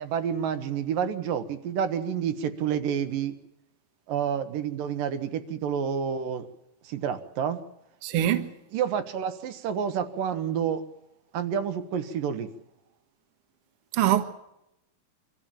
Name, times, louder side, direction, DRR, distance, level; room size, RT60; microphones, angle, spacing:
voice 1, 0.0-3.3 4.1-6.5 6.8-7.6 8.7-10.8 11.3-12.5, right 8 dB, 75° right, 2.8 m, -29 dB
voice 2, 8.0-8.5 13.9-14.2, right 12 dB, 55° right, 1.8 m, -23 dB
24.5 x 14.5 x 8.9 m
omnidirectional pair, 4.1 m